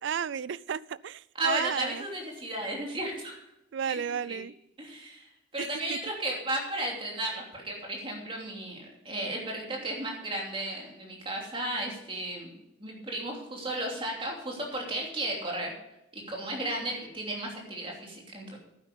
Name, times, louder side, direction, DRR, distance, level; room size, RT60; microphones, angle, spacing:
voice 1, 0.0-2.0 3.7-4.5 5.6-6.0, right 7 dB, 65° right, 21 dB, 0.4 m, -33 dB
voice 2, 1.3-3.4 3.9-4.4 4.8-8.8 9.0-12.5 12.8-15.7 16.1-18.6, right 1 dB, 25° right, -1 dB, 3.0 m, -34 dB
12.0 x 9.6 x 5.3 m, 0.86 s
head